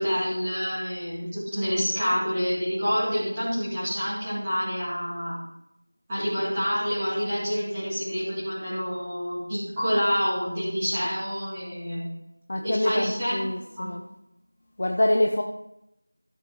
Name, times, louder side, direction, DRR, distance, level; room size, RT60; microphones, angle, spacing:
voice 1, 0.0-5.3 6.1-12.0 12.6-13.4 13.8-13.9, equal, 5° right, -14 dB, 2.5 m, -27 dB
voice 2, 12.5-14.0 14.8-15.4, left 1 dB, 20° left, 2 dB, 0.4 m, -25 dB
14.5 x 6.7 x 4.4 m, 0.84 s
figure-of-eight pair, 180°, 0 cm